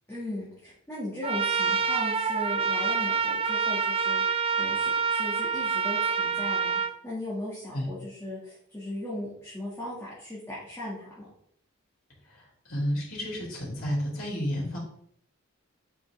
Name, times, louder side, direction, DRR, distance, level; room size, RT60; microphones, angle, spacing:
voice 1, 0.1-11.3, left 1 dB, 10° left, -9 dB, 2.6 m, -38 dB
Trumpet, 1.2-6.9, right 6 dB, 25° right, 0.5 m, -27 dB
voice 2, 12.3-14.8, equal, 75° left, -4 dB, 3.7 m, -31 dB
8.3 x 6.2 x 3.9 m, 0.66 s
head